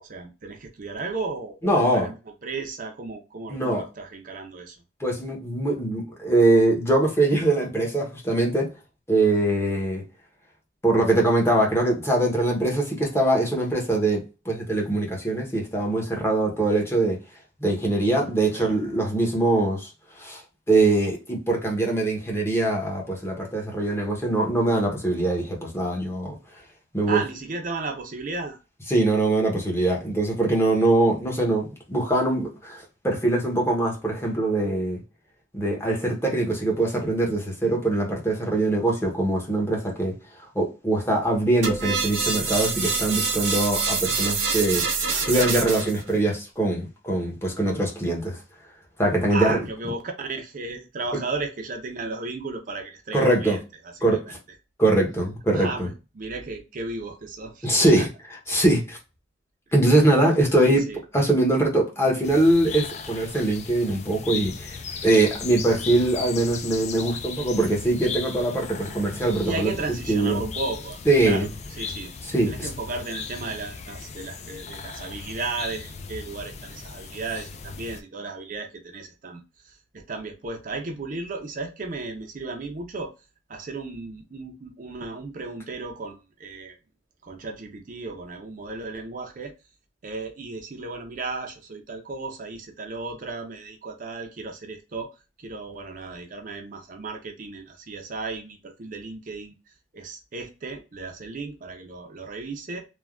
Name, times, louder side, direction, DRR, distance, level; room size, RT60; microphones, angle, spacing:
voice 1, 0.0-2.1 2.4-4.8 18.5-18.8 27.1-28.6 49.3-54.3 55.5-58.1 60.6-61.0 69.4-71.5 71.8-72.1 72.5-83.1 83.5-86.8 87.2-89.5 90.0-95.1 95.4-99.5 99.9-102.9, right 3 dB, 45° right, 0.5 m, -34 dB
voice 2, 1.6-2.1 3.5-3.8 5.0-8.7 9.1-10.0 10.8-17.2 17.6-20.4 20.7-26.4 26.9-27.2 28.9-35.0 35.5-40.1 40.5-44.8 45.2-48.4 49.0-49.6 53.1-53.6 54.0-54.4 54.8-55.9 57.6-58.1 58.5-59.0 59.7-60.8 61.1-64.8 65.0-69.7 70.1-70.4 71.1-71.5 72.2-72.7, right 2 dB, 15° left, 0.8 m, -22 dB
sound 1, 41.6-46.0, right 5 dB, 85° right, 0.8 m, -26 dB
sound 2, 62.2-78.0, left 5 dB, 35° left, 0.3 m, -37 dB
3.3 x 2.2 x 2.3 m
head